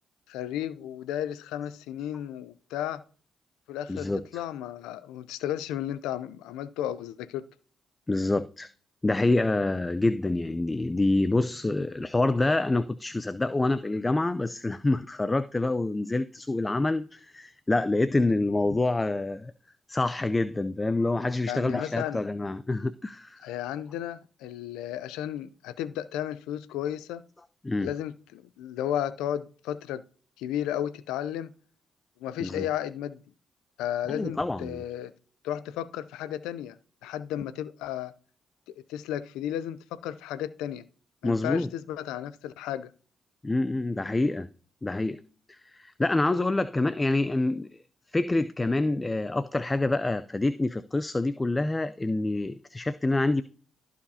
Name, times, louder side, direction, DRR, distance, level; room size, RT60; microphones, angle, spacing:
voice 1, 0.3-3.0 3.7-7.4 21.5-22.2 23.4-27.2 27.8-30.0 30.4-31.5 32.2-33.2 33.8-35.1 35.4-36.8 37.0-38.1 38.9-40.9 41.2-42.9, left 11 dB, 85° left, 0.5 m, -33 dB
voice 2, 3.9-4.4 8.1-8.7 9.0-19.5 19.9-23.5 27.6-27.9 32.4-32.7 34.1-34.8 41.2-41.7 43.4-44.5 44.8-45.2 45.5-47.7 48.1-53.4, left 2 dB, 25° left, 0.5 m, -27 dB
15.0 x 5.0 x 2.8 m
supercardioid pair, 50°, 0 cm